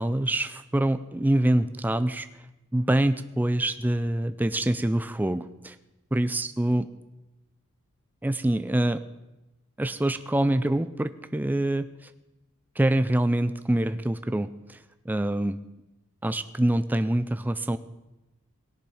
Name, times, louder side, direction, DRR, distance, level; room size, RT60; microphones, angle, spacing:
voice 1, 0.0-2.3 2.7-5.8 6.1-6.9 8.2-9.0 9.8-12.1 12.8-14.8 15.1-15.6 16.2-17.8, right 1 dB, 10° right, 12 dB, 0.3 m, -25 dB
18.0 x 7.0 x 4.8 m, 1.0 s
head